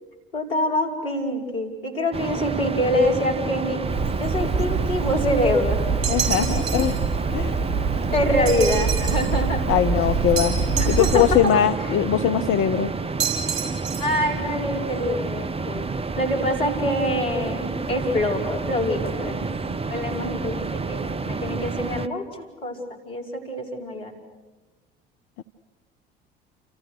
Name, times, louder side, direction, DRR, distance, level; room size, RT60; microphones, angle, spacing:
voice 1, 0.3-3.8 4.2-6.1 8.1-9.6 10.8-12.0 14.0-22.8 23.1-24.2, left 1 dB, 70° left, 1 dB, 5.2 m, -25 dB
sound 1, 2.1-22.1, right 4 dB, 20° right, 1.0 m, -30 dB
Bird, 3.8-11.4, right 5 dB, 35° right, 1.7 m, -26 dB
sound 2, 6.0-7.0 8.5-9.3 10.4-11.5 13.2-14.2, right 8 dB, 60° right, 6.0 m, -29 dB
voice 2, 6.1-7.0 7.3-7.6 9.7-10.5 10.8-12.9 25.4-25.5, left 10 dB, 45° left, 9 dB, 1.0 m, -21 dB
29.5 x 28.0 x 6.6 m, 1.2 s
figure-of-eight pair, 60°, 29 cm